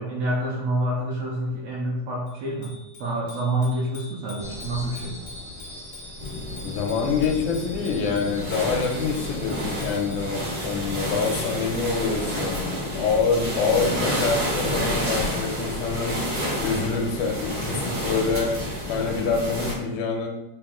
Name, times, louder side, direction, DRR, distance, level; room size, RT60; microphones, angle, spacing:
voice 1, 0.0-5.1, right 1 dB, 80° right, -2 dB, 1.5 m, -27 dB
Bicycle bell, 2.3-10.4, left 3 dB, 65° left, 0.6 m, -46 dB
sound 1, 4.4-18.6, left 1 dB, 35° right, 0.6 m, -44 dB
sound 2, 6.2-19.7, equal, 60° right, 0.8 m, -29 dB
voice 2, 6.6-16.2 16.6-18.6 18.9-20.3, left 5 dB, 85° left, 2 dB, 2.0 m, -26 dB
4.7 x 2.8 x 3.6 m, 0.95 s
omnidirectional pair, 3.4 m